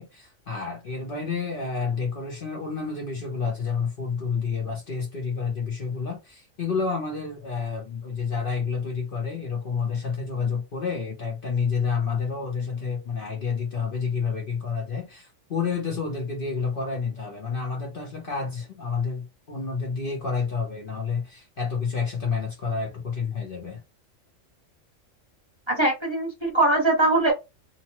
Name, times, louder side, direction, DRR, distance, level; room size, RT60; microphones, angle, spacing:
voice 1, 0.0-23.8, left 5 dB, 50° left, 0.8 m, -29 dB
voice 2, 25.7-27.3, right 2 dB, 25° right, 0.7 m, -21 dB
2.8 x 2.1 x 2.9 m
omnidirectional pair, 1.3 m